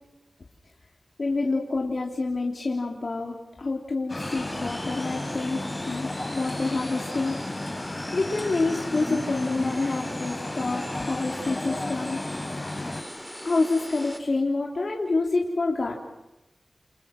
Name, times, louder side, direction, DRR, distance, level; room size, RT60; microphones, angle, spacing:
voice 1, 1.2-7.6 8.1-12.2 13.4-15.9, left 3 dB, 60° left, 0 dB, 3.5 m, -27 dB
sound 1, 4.1-13.0, left 2 dB, 30° left, 3.7 m, -33 dB
sound 2, 4.2-14.2, equal, 5° left, 4.1 m, -40 dB
30.0 x 26.5 x 6.1 m, 0.97 s
wide cardioid pair, 65°, 0 cm